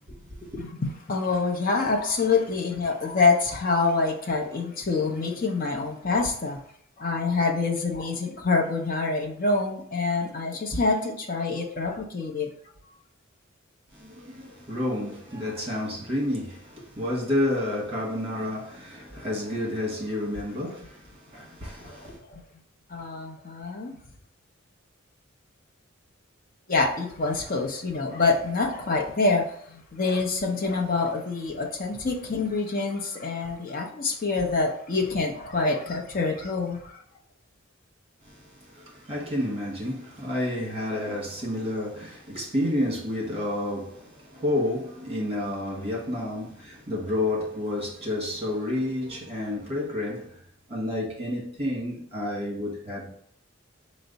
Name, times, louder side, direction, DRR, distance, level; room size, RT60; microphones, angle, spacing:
voice 1, 0.6-6.6 7.0-12.5 21.9-22.4 22.9-24.0 26.7-37.0, left 3 dB, 40° left, 0.6 m, -26 dB
voice 2, 13.9-22.2 38.2-50.4 50.7-53.1, left 1 dB, 25° right, 1.3 m, -30 dB
4.5 x 2.1 x 3.9 m
head